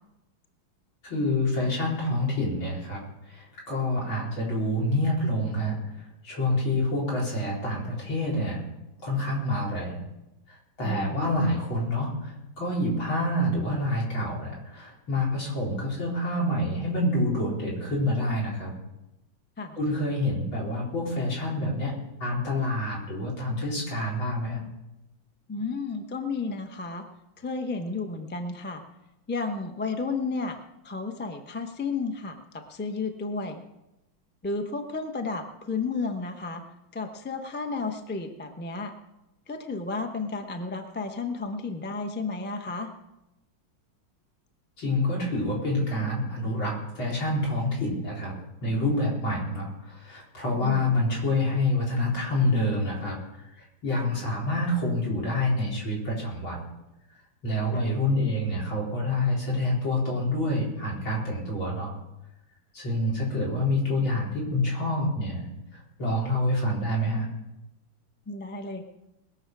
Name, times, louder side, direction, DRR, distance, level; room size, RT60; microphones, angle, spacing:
voice 1, 1.0-8.6 9.0-10.0 10.5-18.7 19.8-21.9 22.2-24.6 44.8-48.4 48.6-53.2 53.6-56.6 57.4-61.9 62.7-67.3, left 1 dB, 75° left, -4 dB, 5.2 m, -27 dB
voice 2, 10.8-11.3 19.6-19.8 25.5-27.0 27.4-28.8 29.3-30.6 30.8-33.6 34.4-36.6 36.9-38.9 39.5-42.9 50.6-51.0 57.7-57.9 68.3-68.8, left 4 dB, 10° left, 5 dB, 0.6 m, -32 dB
20.5 x 7.3 x 6.2 m, 0.93 s
omnidirectional pair, 2.2 m